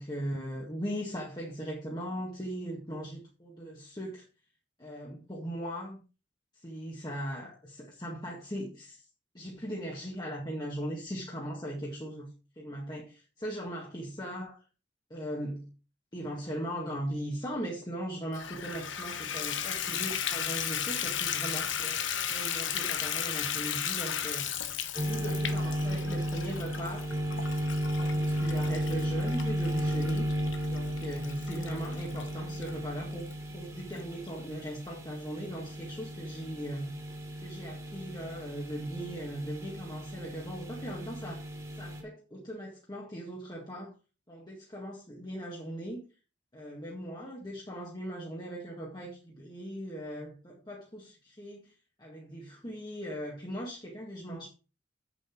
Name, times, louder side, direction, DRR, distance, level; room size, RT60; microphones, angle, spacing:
voice 1, 0.0-4.3 4.8-6.0 6.6-9.1 9.3-12.3 12.6-14.6 15.1-15.7 16.1-22.0 22.3-27.1 27.8-30.4 30.7-36.9 37.4-41.5 41.8-43.9 44.3-46.0 46.5-51.7 52.0-54.5, equal, 20° left, -2 dB, 1.9 m, -39 dB
Water tap faucet / Bathtub (filling or washing), 18.3-32.7 33.3-33.4 33.9-34.0 34.3-34.4, left 9 dB, 70° left, 1.1 m, -35 dB
sound 1, 24.9-42.0, equal, 15° right, 2.5 m, -34 dB
8.1 x 7.4 x 4.5 m, 0.33 s
head